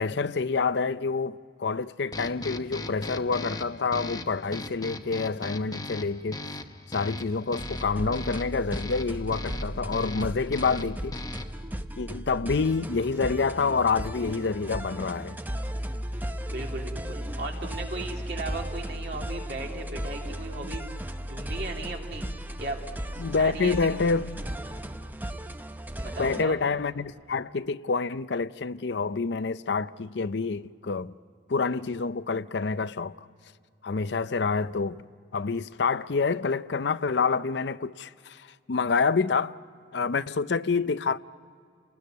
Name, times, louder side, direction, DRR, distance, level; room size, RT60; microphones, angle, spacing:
voice 1, 0.0-6.4 6.9-11.2 12.0-15.4 23.2-24.4 26.2-31.1 31.5-33.2 33.8-35.0 35.3-39.6 39.9-41.2, left 4 dB, 70° left, 0.5 m, -27 dB
sound 1, 2.1-11.7, left 2 dB, 20° left, 0.9 m, -39 dB
sound 2, 7.6-26.4, equal, 10° right, 0.7 m, -36 dB
voice 2, 16.5-20.8 21.2-22.3 22.6-22.9 23.4-24.1 26.0-26.6, right 2 dB, 60° right, 3.1 m, -36 dB
29.5 x 20.0 x 9.3 m
head